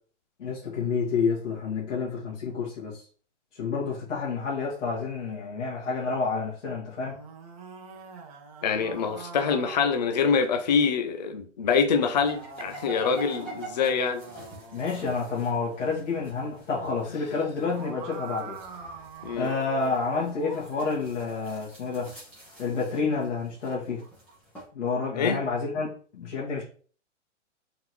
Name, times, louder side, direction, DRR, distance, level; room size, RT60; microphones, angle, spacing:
voice 1, 0.4-3.0 3.5-7.2 14.7-18.6 19.3-22.1 22.6-24.0 24.7-26.6, left 4 dB, 70° left, -6 dB, 1.7 m, -29 dB
sound 1, 6.9-10.8 11.8-16.0 17.4-19.9, right 4 dB, 30° right, 0.8 m, -44 dB
voice 2, 8.6-14.2 19.2-19.5 25.2-25.4, left 6 dB, 35° left, 8 dB, 0.4 m, -25 dB
sound 2, 12.2-24.7, right 2 dB, 5° left, 1.0 m, -47 dB
3.8 x 3.6 x 3.0 m, 0.42 s
hypercardioid pair, 165°, 37 cm